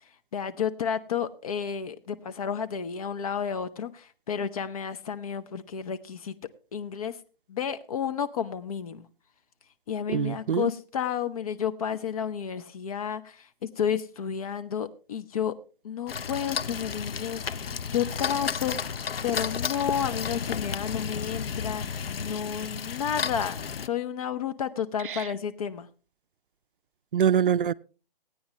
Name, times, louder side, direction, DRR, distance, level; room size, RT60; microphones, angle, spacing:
voice 1, 0.3-6.3 6.7-7.1 7.5-9.1 9.9-15.5 15.8-25.9, left 8 dB, 40° left, 0.7 m, -31 dB
voice 2, 10.1-10.7 25.0-25.3 27.1-27.7, right 9 dB, 60° right, 0.5 m, -24 dB
sound 1, 16.1-23.9, left 6 dB, 75° left, 0.7 m, -32 dB
16.5 x 9.4 x 3.1 m
figure-of-eight pair, 145°, 29 cm